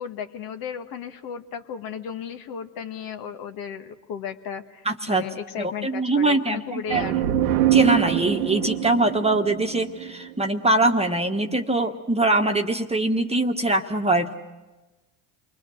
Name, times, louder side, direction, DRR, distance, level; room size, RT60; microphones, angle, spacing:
voice 1, 0.0-7.2, left 7 dB, 55° left, 7 dB, 1.5 m, -35 dB
voice 2, 4.8-5.3 5.6-7.0 7.7-14.3, right 2 dB, 15° right, 4 dB, 1.3 m, -23 dB
sound 1, 6.9-10.5, right 13 dB, 80° right, 1.1 m, -24 dB
28.5 x 21.5 x 6.5 m, 1.2 s
hypercardioid pair, 70°, 42 cm